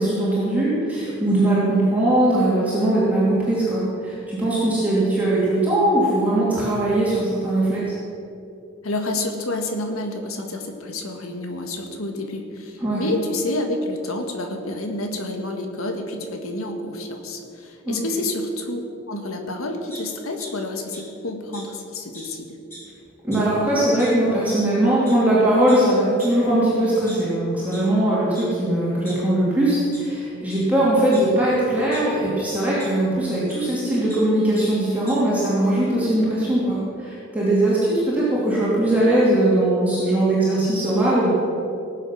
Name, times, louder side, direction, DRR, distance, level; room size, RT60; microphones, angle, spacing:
voice 1, 0.0-7.9 12.8-13.0 17.8-18.0 23.2-41.3, right 1 dB, 5° right, -9 dB, 2.9 m, -20 dB
voice 2, 8.8-22.6, left 2 dB, 90° left, 4 dB, 1.7 m, -29 dB
sound 1, 19.9-20.5 20.9-21.0 21.5-21.6 22.1-22.2 22.6-22.9 23.3-23.4 24.0-24.1 24.5-24.6 25.1-25.2 25.7-25.8 26.2-26.3 26.9-27.8 28.3-28.4 28.8-29.5 29.9-30.0 30.5-30.6 31.1-32.0 32.8-32.9 33.5-33.6 33.9-34.2 34.5-34.6 34.9-35.1, equal, 10° left, 3.9 m, -41 dB
18.5 x 7.7 x 6.2 m, 2.7 s
head